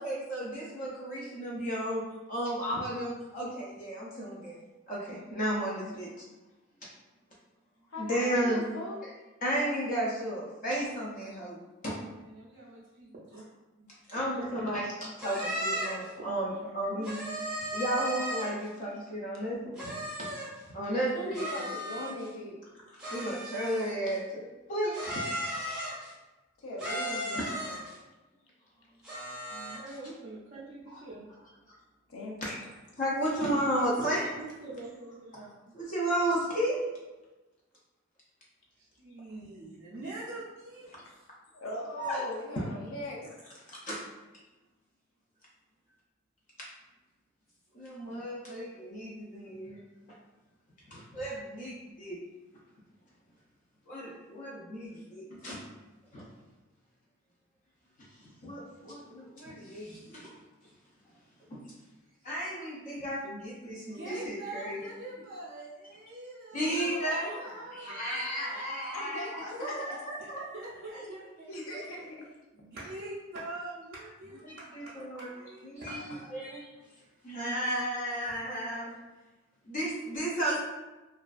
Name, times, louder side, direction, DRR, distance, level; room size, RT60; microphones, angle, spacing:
voice 1, 0.0-2.0 2.3-6.1 8.0-8.6 9.4-11.9 14.1-17.2 17.7-19.9 20.2-20.3 20.7-21.5 23.1-25.2 30.9-31.0 32.4-32.6 33.0-34.3 35.7-36.8 42.0-42.2 43.7-44.0 47.7-49.8 50.9-52.2 53.9-55.6 56.1-56.2 58.2-60.4 61.5-61.6 62.2-64.8 66.5-67.3 67.7-70.5 71.0-71.1 71.7-71.8 74.4-75.3 75.6-76.7 77.2-79.0 79.7-80.6, right 1 dB, 40° left, -5 dB, 0.4 m, -33 dB
voice 2, 7.9-9.1 21.1-22.6 26.6-27.8 32.1-32.3 41.1-41.2 41.5-43.3 66.5-67.7 68.8-70.0 71.5-72.3 75.0-75.1, left 1 dB, 85° left, -2 dB, 0.5 m, -40 dB
voice 3, 12.0-13.5 13.8-14.7 16.5-17.1 17.4-17.8 29.5-31.3 34.3-35.9 38.8-41.3 42.4-42.5 63.8-68.8 70.2-71.5 72.5-76.5, right 2 dB, 45° right, -9 dB, 0.4 m, -45 dB
sound 1, 15.2-16.1 17.0-18.7 19.8-20.6 21.3-22.3 23.0-24.1 24.9-26.1 26.8-28.0 29.0-30.0, equal, 5° right, 0.6 m, -36 dB
2.4 x 2.2 x 2.3 m, 1.1 s
head